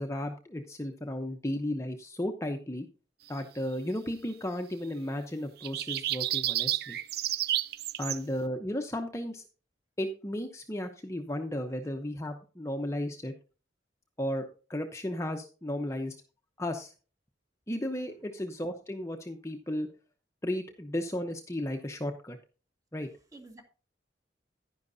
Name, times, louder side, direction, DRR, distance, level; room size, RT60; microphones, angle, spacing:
voice 1, 0.0-2.9 3.3-7.0 8.0-9.4 10.0-13.3 14.2-16.1 16.6-16.9 17.7-19.9 20.4-22.4 22.9-23.1, left 1 dB, 15° left, 4 dB, 0.8 m, -34 dB
sound 1, 5.6-8.2, right 13 dB, 60° right, 0.5 m, -31 dB
voice 2, 23.0-23.6, right 2 dB, 20° right, 4 dB, 2.0 m, -52 dB
10.5 x 10.5 x 2.7 m, 0.36 s
head